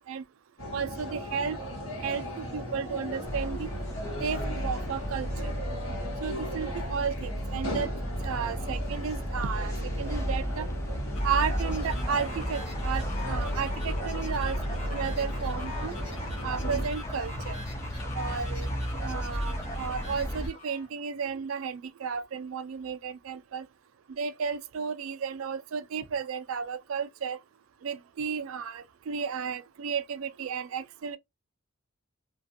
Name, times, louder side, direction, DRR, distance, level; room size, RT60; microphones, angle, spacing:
sound 1, 0.6-16.9, equal, 80° left, 1.2 m, -38 dB
voice 1, 0.7-1.6 2.0-3.7 4.2-5.6 6.2-7.9 8.2-10.7 11.2-14.6 14.9-15.9 16.4-17.6 18.1-18.7 19.0-23.7 24.1-27.4 27.8-31.2, right 6 dB, 70° right, 0.3 m, -33 dB
sound 2, 3.2-20.5, equal, 15° left, 0.4 m, -33 dB
sound 3, 11.1-20.9, equal, 30° left, 0.8 m, -42 dB
2.4 x 2.3 x 2.6 m
head